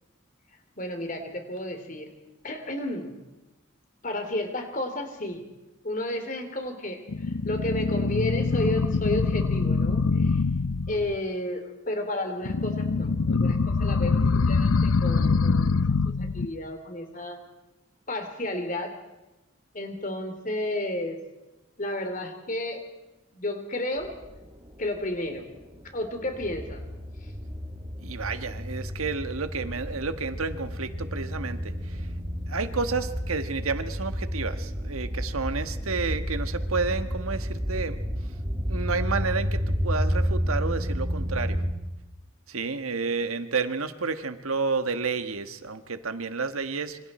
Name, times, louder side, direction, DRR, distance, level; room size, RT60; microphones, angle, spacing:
voice 1, 0.8-2.1 2.4-3.2 4.0-5.4 5.8-10.4 10.9-15.8 16.0-17.4 18.1-19.0 19.7-21.2 21.8-22.8 23.3-24.2 24.8-25.5 25.9-26.8, left 1 dB, 40° left, 6 dB, 3.1 m, -32 dB
sound 1, 7.1-11.1 12.4-16.5, left 4 dB, 85° left, 0.6 m, -24 dB
sound 2, 24.0-41.7, equal, 20° right, 2.1 m, -31 dB
voice 2, 28.0-32.1 32.5-38.0 38.7-41.6 42.5-47.0, right 4 dB, 90° right, 9 dB, 1.5 m, -30 dB
27.0 x 25.5 x 4.3 m, 1.0 s
head